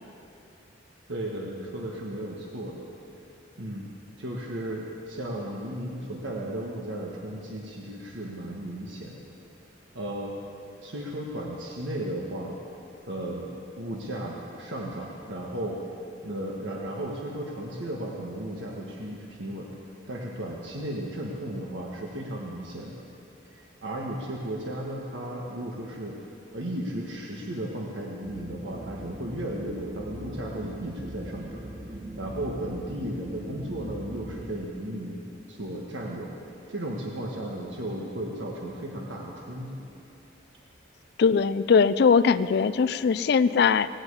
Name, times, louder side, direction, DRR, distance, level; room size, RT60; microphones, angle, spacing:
voice 1, 1.1-2.9 3.6-9.2 9.9-10.3 10.8-12.6 13.1-13.5 13.8-15.8 16.2-19.7 20.1-23.0 23.5-26.2 26.5-31.6 32.2-35.2 35.5-36.3 36.7-39.9, right 1 dB, 75° right, -2 dB, 1.5 m, -35 dB
sound 1, 28.2-34.6, right 1 dB, 40° right, 1.1 m, -41 dB
voice 2, 41.2-43.9, left 5 dB, 55° left, 13 dB, 0.4 m, -21 dB
18.5 x 8.1 x 8.2 m, 2.7 s
head